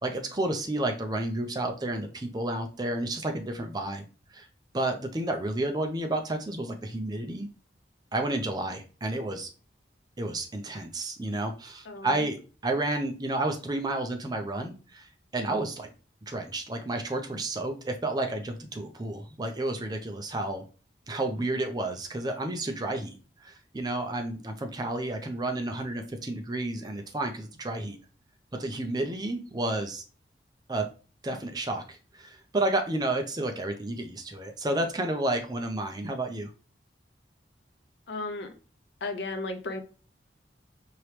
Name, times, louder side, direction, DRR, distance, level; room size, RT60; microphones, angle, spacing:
voice 1, 0.0-4.0 4.3-4.5 4.7-7.5 8.1-9.5 10.2-15.9 16.3-20.6 21.1-23.2 23.4-28.0 28.6-30.0 30.7-30.9 31.2-36.5, right 2 dB, 25° right, 0.5 m, -31 dB
voice 2, 11.9-12.2 38.1-38.5 39.0-39.8, left 2 dB, 85° left, 0.6 m, -34 dB
4.6 x 2.9 x 3.2 m
head